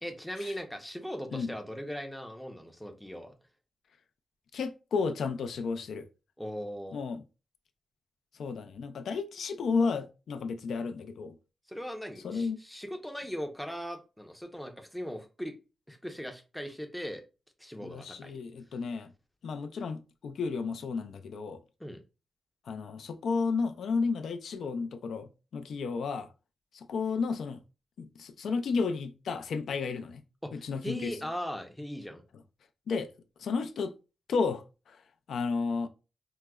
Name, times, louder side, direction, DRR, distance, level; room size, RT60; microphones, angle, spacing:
voice 1, 0.0-3.3 6.4-7.0 11.7-15.5 15.9-17.2 17.6-18.4 21.8-22.0 30.4-32.2, equal, ahead, 0.4 m, -39 dB
voice 2, 4.5-6.1 6.9-7.2 8.4-11.3 12.2-12.6 17.8-19.1 19.4-21.6 22.7-26.3 26.7-27.6 28.0-30.2 30.5-31.1 32.9-33.1 33.4-33.9 34.3-35.0 35.3-35.9, left 4 dB, 80° left, 0.3 m, -32 dB
4.6 x 2.0 x 2.2 m
wide cardioid pair, 165°, 0 cm